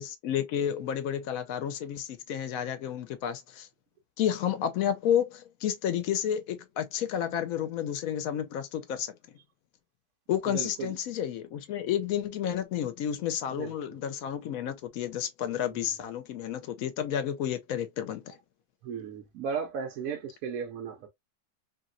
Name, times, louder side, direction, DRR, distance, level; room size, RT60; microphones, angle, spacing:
voice 1, 0.0-3.7 4.2-9.1 10.3-18.4, left 9 dB, 70° left, 1.0 m, -31 dB
voice 2, 10.5-10.9 13.6-13.7 15.6-15.7 18.8-21.1, right 6 dB, 75° right, 1.0 m, -35 dB
2.8 x 2.8 x 2.4 m
omnidirectional pair, 1.6 m